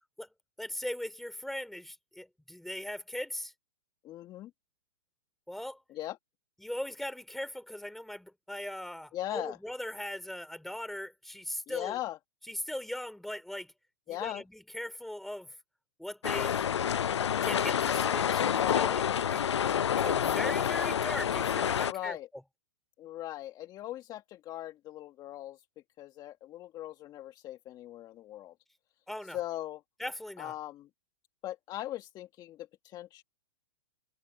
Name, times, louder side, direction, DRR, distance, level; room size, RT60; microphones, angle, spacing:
voice 1, 0.6-3.5 5.5-5.8 6.6-12.0 12.5-13.7 14.1-15.5 16.0-16.7 17.4-19.0 19.3-19.5 20.0-22.2 29.1-29.4 30.0-30.5, left 1 dB, ahead, 3.6 m, -39 dB
voice 2, 4.0-4.5 5.9-6.2 9.1-9.6 11.7-12.2 14.1-14.4 18.5-19.0 21.7-22.3 23.0-25.6 26.0-28.5 29.3-29.8 30.4-30.9 31.4-33.2, left 14 dB, 30° left, 1.5 m, -39 dB
sound 1, 16.2-21.9, left 9 dB, 85° left, 0.6 m, -28 dB
hypercardioid pair, 125°, 14 cm